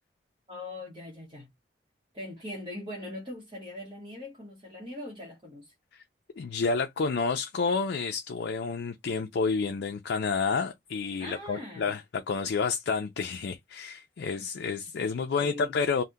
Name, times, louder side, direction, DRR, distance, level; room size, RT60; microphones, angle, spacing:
voice 1, 0.5-1.5 2.1-5.7 11.2-11.9 15.4-15.8, left 1 dB, 25° right, 0.8 m, -41 dB
voice 2, 6.4-16.0, left 4 dB, 70° left, 0.4 m, -30 dB
2.7 x 2.1 x 3.4 m
head